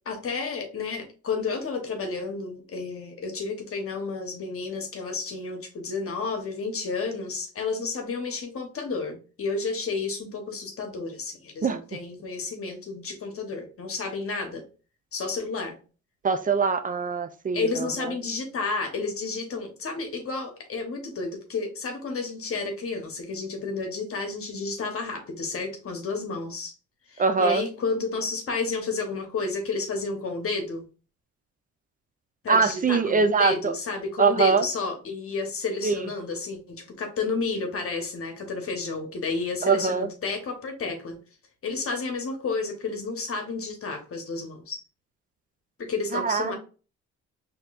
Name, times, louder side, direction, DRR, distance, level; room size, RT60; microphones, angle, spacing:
voice 1, 0.1-14.7 15.1-15.8 17.5-26.7 27.1-30.8 32.4-41.2 41.6-44.8 45.8-46.6, left 4 dB, 50° left, 4 dB, 0.9 m, -31 dB
voice 2, 11.6-12.0 16.2-17.9 27.2-27.6 32.5-33.7 34.2-34.6 35.8-36.0 39.6-40.1 46.1-46.5, right 5 dB, 30° right, 10 dB, 0.4 m, -23 dB
4.3 x 2.8 x 2.4 m, 0.36 s
cardioid pair, 90°, 30 cm